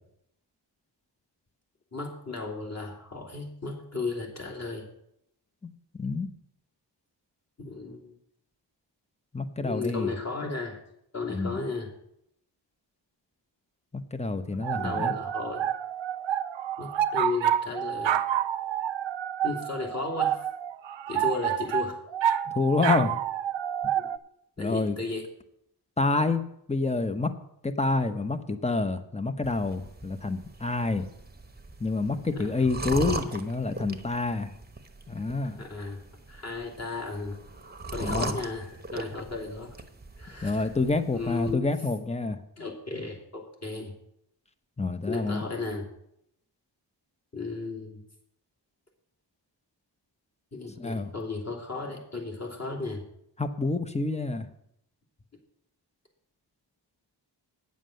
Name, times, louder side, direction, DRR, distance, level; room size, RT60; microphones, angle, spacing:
voice 1, 1.9-4.9 7.6-8.1 9.6-10.8 11.1-11.9 14.5-15.7 16.8-18.2 19.4-20.5 21.1-22.0 23.9-24.1 24.6-25.3 32.3-32.7 35.5-36.0 36.3-37.4 37.9-39.8 40.2-40.7 41.1-41.7 42.6-43.9 45.1-45.9 47.3-48.0 50.5-53.0, left 3 dB, 35° left, 0 dB, 2.7 m, -35 dB
voice 2, 5.9-6.3 9.3-10.1 11.3-11.6 13.9-15.1 22.5-23.1 24.6-25.0 26.0-26.4 26.7-27.3 27.6-31.0 31.8-34.5 35.1-35.6 38.0-38.4 40.4-42.4 44.8-45.5 50.8-51.1 53.4-54.5, left 3 dB, 15° left, 10 dB, 0.9 m, -28 dB
sound 1, 14.6-24.2, right 10 dB, 90° right, 0.6 m, -28 dB
sound 2, 29.4-41.5, right 2 dB, 20° right, 1.0 m, -39 dB
9.2 x 7.4 x 6.4 m, 0.75 s
wide cardioid pair, 70°, 44 cm